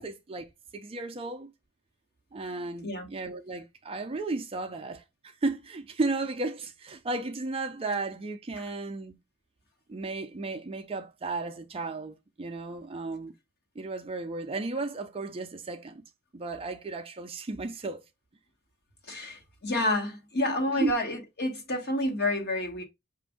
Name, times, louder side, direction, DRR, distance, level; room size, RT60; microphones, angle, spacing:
voice 1, 0.0-1.5 2.3-9.2 9.9-13.3 13.8-16.0 16.3-18.0 20.7-20.9, right 3 dB, 25° right, 0.4 m, -34 dB
voice 2, 19.1-22.8, left 1 dB, 50° left, 1.2 m, -29 dB
6.0 x 2.5 x 3.4 m
head